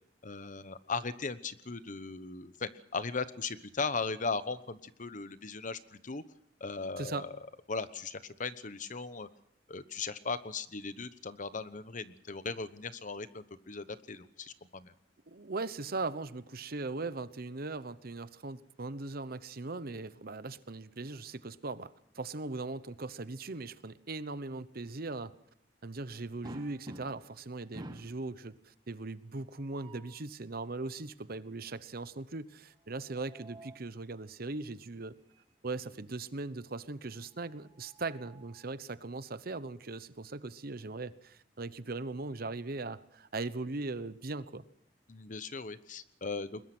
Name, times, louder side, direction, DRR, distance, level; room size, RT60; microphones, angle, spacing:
voice 1, 0.2-6.2 6.6-7.3 7.7-9.3 9.7-14.9 45.1-46.6, left 4 dB, 45° left, 13 dB, 1.0 m, -38 dB
voice 2, 7.0-7.3 15.3-25.4 25.8-35.2 35.6-44.6, right 3 dB, 55° right, 14 dB, 1.0 m, -39 dB
sound 1, 26.4-27.4 27.7-28.2 29.4-30.2 32.9-33.9 35.3-35.5 35.9-36.0 37.5-38.7, right 1 dB, 25° right, 1.4 m, -50 dB
21.5 x 21.0 x 6.1 m, 0.68 s
head